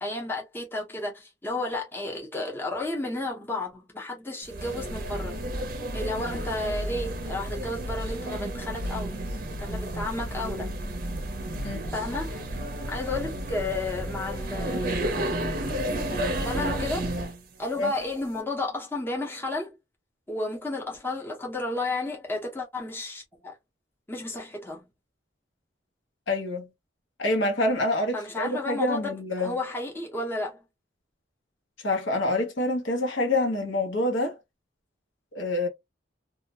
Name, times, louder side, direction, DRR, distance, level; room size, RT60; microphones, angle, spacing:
voice 1, 0.0-5.4 5.9-9.2 9.6-10.7 11.9-12.5 12.9-14.9 16.2-17.1 17.6-19.7 20.3-23.5 24.1-24.8 28.1-29.1 29.4-30.6, left 2 dB, 10° left, 0.7 m, -32 dB
sound 1, 4.5-17.4, right 1 dB, 45° right, 0.5 m, -32 dB
voice 2, 26.3-26.7 27.2-29.6 31.8-34.4 35.3-35.7, left 1 dB, 75° left, 0.9 m, -26 dB
2.3 x 2.1 x 2.8 m
head